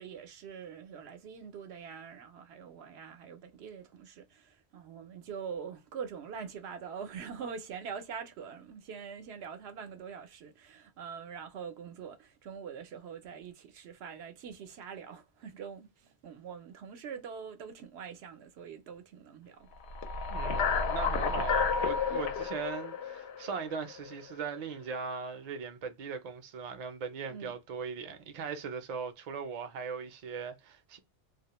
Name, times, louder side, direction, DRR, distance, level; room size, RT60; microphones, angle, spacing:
voice 1, 0.0-19.7 27.3-27.5, right 6 dB, 80° right, 0.8 m, -44 dB
sound 1, 19.8-24.1, left 5 dB, 90° left, 0.9 m, -31 dB
voice 2, 20.3-31.0, right 6 dB, 50° right, 0.5 m, -39 dB
2.3 x 2.0 x 2.9 m
omnidirectional pair, 1.1 m